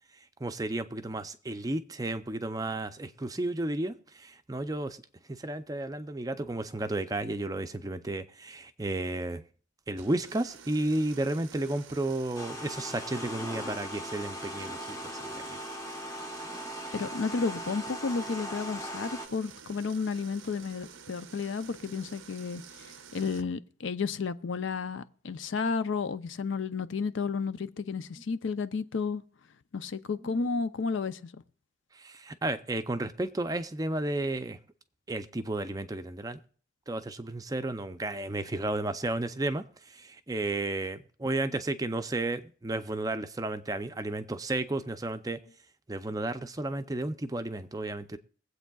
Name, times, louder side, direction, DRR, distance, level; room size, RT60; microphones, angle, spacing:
voice 1, 0.4-5.0 5.3-9.4 9.9-15.6 30.2-30.5 31.9-34.6 35.1-36.4 36.9-45.4 45.9-48.2, right 2 dB, 20° right, 0.4 m, -33 dB
sound 1, 9.9-23.4, right 7 dB, 75° right, 0.6 m, -50 dB
sound 2, 12.4-19.3, equal, 15° left, 0.7 m, -39 dB
voice 2, 16.9-29.2 29.7-31.3, left 5 dB, 70° left, 0.5 m, -32 dB
22.5 x 8.1 x 2.3 m
head